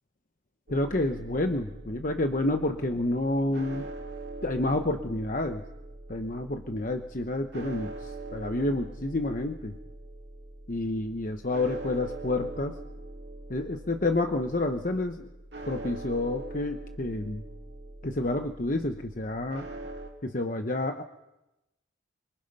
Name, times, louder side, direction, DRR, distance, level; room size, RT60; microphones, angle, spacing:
voice 1, 0.7-3.9 4.4-5.6 6.1-9.8 10.7-12.8 13.5-15.3 15.7-17.4 18.0-19.6 20.2-21.0, left 2 dB, 45° left, 6 dB, 0.9 m, -29 dB
sound 1, 0.7-20.1, right 2 dB, 65° right, 2.7 m, -43 dB
27.5 x 24.0 x 5.4 m, 0.96 s
head